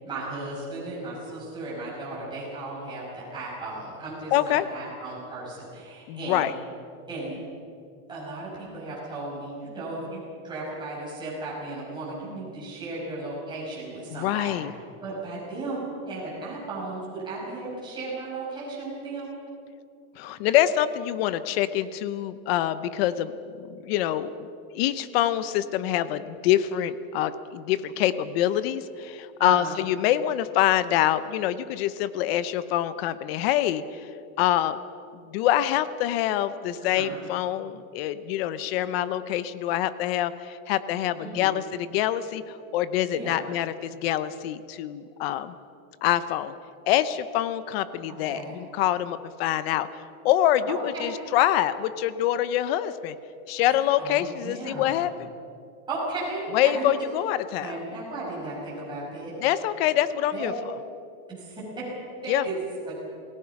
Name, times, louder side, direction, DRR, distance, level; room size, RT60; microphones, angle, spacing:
voice 1, 0.0-6.5 7.1-7.4 8.1-14.6 15.0-19.3 29.4-29.8 36.8-37.2 41.2-41.6 43.1-43.5 48.3-48.6 50.7-51.1 53.6-55.0 55.9-56.9 57.6-59.3 60.3-60.5 61.4-61.6 62.2-62.6 62.9-63.0, right 2 dB, 10° right, -7 dB, 6.1 m, -35 dB
voice 2, 4.3-4.7 6.1-6.5 14.1-14.7 20.2-23.3 23.6-24.3 24.7-34.1 34.4-34.8 35.1-45.5 46.0-46.5 46.9-53.1 53.5-55.3 56.5-57.7 59.4-60.8 62.3-62.4, left 12 dB, 45° left, 14 dB, 0.8 m, -25 dB
27.0 x 17.5 x 5.9 m, 2.5 s
supercardioid pair, 165°, 43 cm